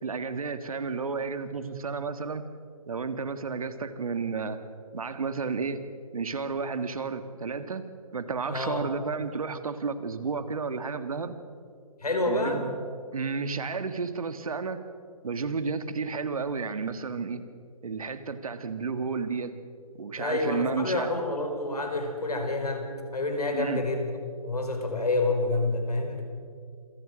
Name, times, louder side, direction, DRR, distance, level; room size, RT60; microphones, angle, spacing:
voice 1, 0.0-2.5 2.9-4.6 4.9-5.8 6.1-7.9 8.1-11.4 12.3-12.8 13.1-14.8 15.2-17.4 17.8-19.6 19.9-21.1 23.5-23.8, right 5 dB, 65° right, 10 dB, 1.9 m, -32 dB
voice 2, 8.5-8.9 12.0-12.7 20.2-24.1 24.4-26.2, left 2 dB, 85° left, 4 dB, 5.1 m, -28 dB
27.0 x 17.5 x 6.4 m, 2.2 s
figure-of-eight pair, 150°, 19 cm